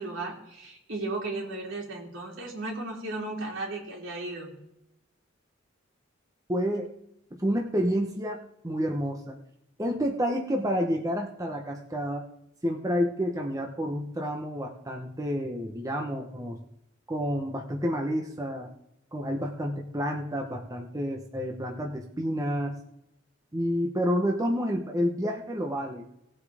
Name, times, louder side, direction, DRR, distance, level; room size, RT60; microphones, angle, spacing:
voice 1, 0.0-4.5, right 2 dB, 75° right, -1 dB, 3.5 m, -35 dB
voice 2, 6.5-6.9 7.4-9.4 9.8-12.2 12.6-16.6 17.1-18.7 19.1-22.8 23.5-26.0, equal, 15° right, 1 dB, 1.1 m, -29 dB
18.5 x 8.4 x 3.6 m, 0.81 s
head